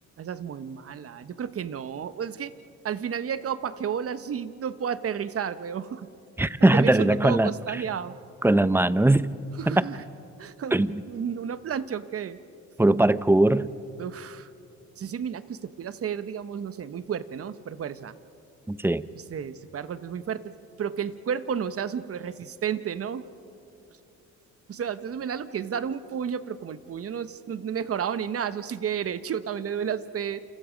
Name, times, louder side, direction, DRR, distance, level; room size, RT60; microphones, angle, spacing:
voice 1, 0.2-2.5 2.8-6.1 6.7-8.2 9.6-10.0 10.4-12.4 14.0-14.5 15.0-18.1 19.1-23.3 24.7-30.4, right 8 dB, 50° right, 13 dB, 1.1 m, -32 dB
voice 2, 6.4-7.5 8.4-9.4 9.7-9.8 10.7-11.0 12.8-13.7 18.7-19.0, right 2 dB, 10° right, 15 dB, 0.7 m, -20 dB
29.0 x 27.0 x 5.2 m, 2.7 s
cardioid pair, 90°, 30 cm